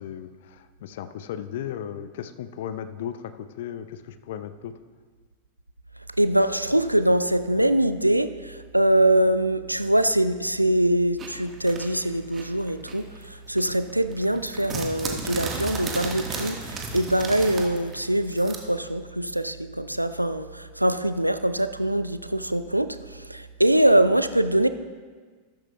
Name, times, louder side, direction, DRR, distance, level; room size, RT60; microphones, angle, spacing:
voice 1, 0.0-4.7, left 9 dB, 55° left, 11 dB, 0.5 m, -36 dB
voice 2, 6.2-8.3 8.7-13.0 13.5-23.0 23.3-24.7, right 1 dB, 90° right, 12 dB, 0.4 m, -23 dB
sound 1, 11.2-13.3 13.6-18.6, right 3 dB, 25° right, 1.4 m, -34 dB
13.5 x 13.0 x 2.3 m, 1.5 s
figure-of-eight pair, 90°, 0 cm